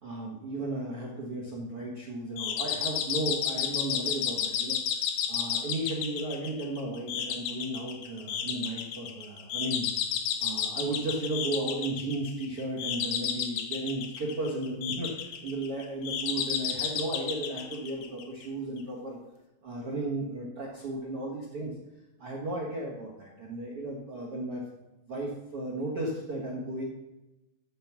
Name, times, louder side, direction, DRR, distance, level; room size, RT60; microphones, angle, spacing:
voice 1, 0.0-9.9 10.4-19.2 19.6-21.7 22.2-24.6 25.1-26.8, right 2 dB, 50° right, -3 dB, 1.7 m, -34 dB
sound 1, 2.4-18.5, left 8 dB, 70° left, 2.5 m, -32 dB
14.5 x 5.1 x 6.1 m, 0.98 s
omnidirectional pair, 5.0 m